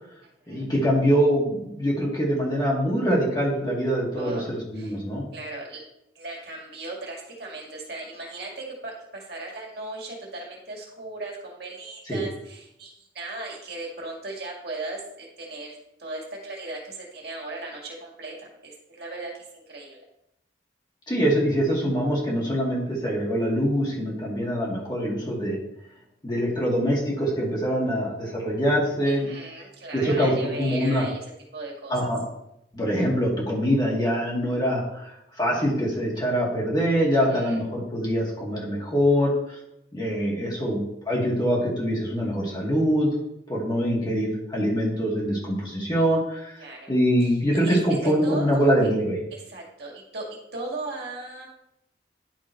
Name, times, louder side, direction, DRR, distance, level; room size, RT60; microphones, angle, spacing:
voice 1, 0.5-5.3 12.1-12.2 21.1-25.6 26.2-29.3 29.9-31.0 31.9-32.2 32.7-35.1 35.4-39.3 39.9-43.1 43.5-46.5 46.9-49.2, equal, 20° left, -4 dB, 2.0 m, -24 dB
voice 2, 4.2-4.5 4.7-4.9 5.3-5.8 6.1-20.0 29.0-32.1 37.1-37.6 46.6-46.9 47.2-47.3 47.6-47.8 48.0-48.9 49.3-50.3 50.5-51.5, right 2 dB, 55° right, -2 dB, 2.2 m, -37 dB
10.5 x 3.7 x 4.5 m, 0.82 s
head